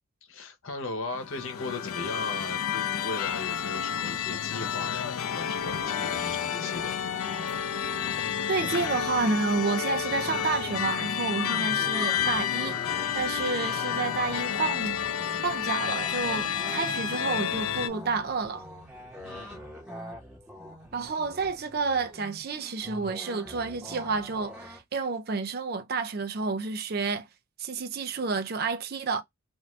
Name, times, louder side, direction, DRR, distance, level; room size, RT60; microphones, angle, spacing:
voice 1, 0.2-7.0 19.2-19.6, left 3 dB, 70° left, 0.9 m, -37 dB
sound 1, 1.1-17.9, left 9 dB, 90° left, 0.5 m, -30 dB
sound 2, 5.6-24.8, equal, 5° right, 1.2 m, -45 dB
voice 2, 8.5-15.0 15.4-18.7 20.9-27.3 27.6-29.2, right 4 dB, 45° right, 0.4 m, -30 dB
2.6 x 2.6 x 3.2 m
head